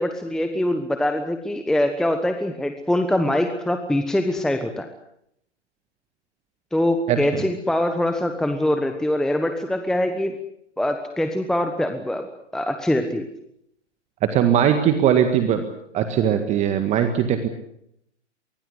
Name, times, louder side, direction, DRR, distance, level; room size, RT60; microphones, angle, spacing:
voice 1, 0.0-4.9 6.7-10.3 10.8-12.3 12.5-13.3, left 1 dB, ahead, 7 dB, 1.2 m, -23 dB
voice 2, 7.1-7.4 14.3-15.7 15.9-17.5, right 9 dB, 20° right, 8 dB, 1.8 m, -20 dB
24.0 x 22.0 x 8.2 m, 0.75 s
figure-of-eight pair, 130°, 36 cm